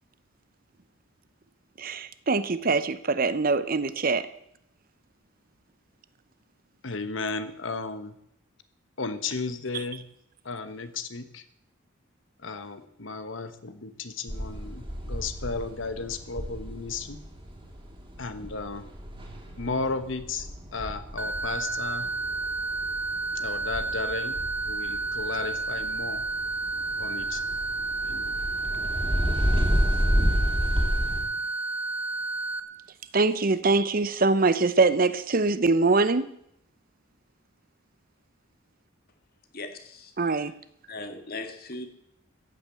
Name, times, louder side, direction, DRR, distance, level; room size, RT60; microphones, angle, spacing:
voice 1, 1.8-4.3 33.1-36.3 40.2-40.5, right 3 dB, 45° right, 14 dB, 0.7 m, -23 dB
voice 2, 6.8-8.2 9.0-10.0 10.4-11.4 12.4-17.2 18.2-18.8 19.6-22.1 23.3-24.4 24.6-26.2 27.0-27.4 28.0-28.4, left 4 dB, 65° left, 10 dB, 1.2 m, -34 dB
sound 1, 14.3-31.2, equal, 25° right, 3.0 m, -31 dB
sound 2, 21.2-32.6, right 3 dB, 10° right, 0.9 m, -31 dB
voice 3, 39.5-40.1 40.9-41.9, left 2 dB, 45° left, 7 dB, 1.9 m, -38 dB
15.0 x 8.7 x 7.6 m, 0.74 s
head